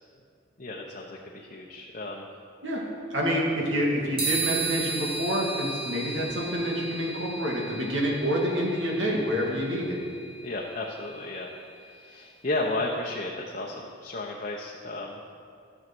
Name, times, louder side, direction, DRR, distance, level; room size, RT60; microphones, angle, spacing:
voice 1, 0.6-2.3 10.4-11.5 11.8-15.2, left 2 dB, 40° left, -2 dB, 1.0 m, -33 dB
voice 2, 2.6-10.0, equal, 75° right, -2 dB, 2.6 m, -27 dB
sound 1, 4.2-11.8, right 4 dB, 30° right, 3.0 m, -35 dB
14.5 x 7.4 x 6.2 m, 2.3 s
head